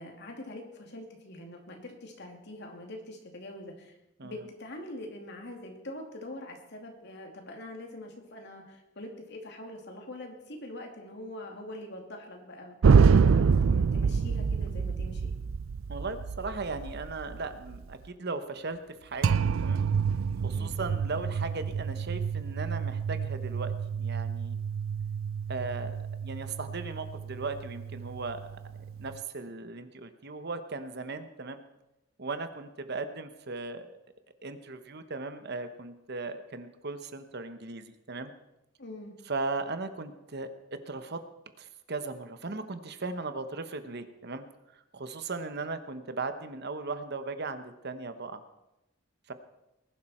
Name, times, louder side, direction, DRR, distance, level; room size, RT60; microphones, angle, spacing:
voice 1, 0.0-4.0 4.2-15.3 20.5-20.8 38.8-39.1, left 1 dB, 60° left, 2 dB, 2.7 m, -44 dB
sound 1, 12.8-17.9 19.2-29.2, right 6 dB, 80° right, 0.4 m, -27 dB
voice 2, 15.9-19.9 20.4-24.6 25.5-28.6 29.0-31.6 32.2-34.0 34.4-38.3 39.3-40.5 40.9-41.2 41.6-44.4 44.7-48.4 49.3-49.4, right 3 dB, 55° right, 10 dB, 1.1 m, -37 dB
20.0 x 11.5 x 4.4 m, 0.92 s
head